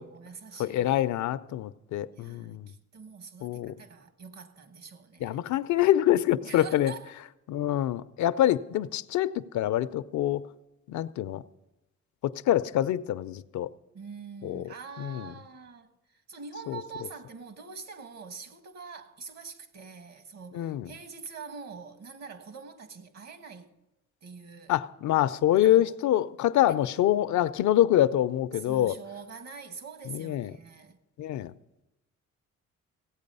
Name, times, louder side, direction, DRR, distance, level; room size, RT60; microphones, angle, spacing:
voice 1, 0.0-1.0 2.1-5.4 6.4-7.1 13.9-23.7 24.2-24.7 25.5-26.0 28.5-31.0, right 5 dB, 60° right, 1.5 m, -45 dB
voice 2, 0.6-2.7 3.4-3.8 5.2-6.9 7.5-10.4 10.9-11.4 12.2-13.7 14.4-15.3 16.7-16.8 20.5-20.9 24.7-28.9 30.1-30.5 31.2-31.5, left 12 dB, 70° left, 0.5 m, -26 dB
16.0 x 8.4 x 5.4 m
cardioid pair, 90°, 30 cm